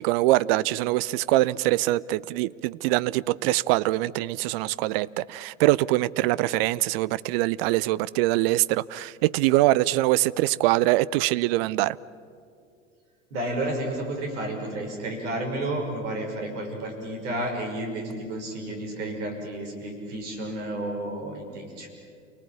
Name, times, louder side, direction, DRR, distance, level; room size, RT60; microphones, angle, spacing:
voice 1, 0.0-12.0, right 17 dB, 50° right, 0.7 m, -23 dB
voice 2, 13.3-21.9, right 1 dB, 65° right, 6.0 m, -31 dB
29.0 x 19.0 x 8.7 m
figure-of-eight pair, 75°, 38 cm